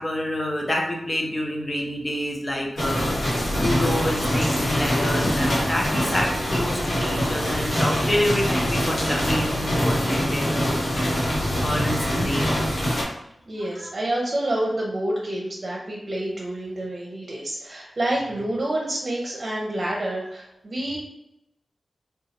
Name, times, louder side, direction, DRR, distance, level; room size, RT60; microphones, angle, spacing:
voice 1, 0.0-3.1 3.6-10.8 11.6-12.8 13.8-13.9, left 1 dB, 35° left, -1 dB, 0.7 m, -27 dB
sound 1, 2.8-13.0, equal, 80° left, 1.0 m, -24 dB
voice 2, 13.5-21.0, right 1 dB, 50° right, -3 dB, 0.6 m, -28 dB
2.7 x 2.2 x 2.8 m, 0.84 s
cardioid pair, 40°, 0 cm